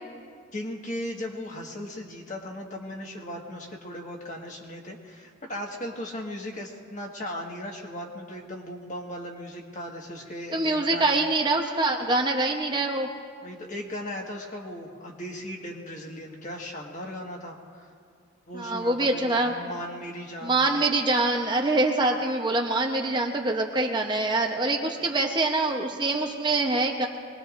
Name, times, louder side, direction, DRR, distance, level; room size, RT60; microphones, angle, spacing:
voice 1, 0.5-11.2 13.4-17.9 18.5-20.6, left 1 dB, 35° left, 0 dB, 1.7 m, -37 dB
voice 2, 10.5-13.1 18.5-19.5 20.4-27.1, right 2 dB, 20° right, 1 dB, 0.8 m, -25 dB
24.0 x 20.0 x 2.6 m, 2.1 s
head